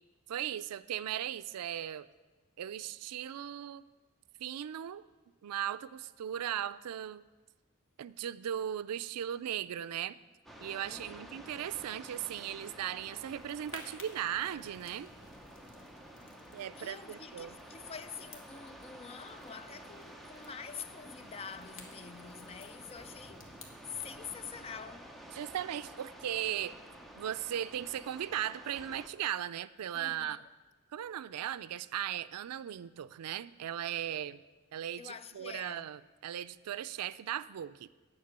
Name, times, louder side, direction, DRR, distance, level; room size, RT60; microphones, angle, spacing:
voice 1, 0.3-2.1 2.6-3.8 4.4-5.0 5.4-7.2 8.0-10.1 10.6-15.1 16.5-17.5 25.3-26.8 27.2-30.4 30.9-34.4 34.7-37.9, right 10 dB, 85° right, 0.4 m, -37 dB
sound 1, 10.5-29.1, right 1 dB, ahead, 0.7 m, -51 dB
voice 2, 10.9-11.3 16.8-23.5 23.9-25.1 29.9-30.5 35.0-35.9, left 6 dB, 25° left, 0.4 m, -46 dB
sound 2, 13.2-24.3, left 3 dB, 60° left, 1.5 m, -57 dB
9.5 x 6.0 x 8.1 m
head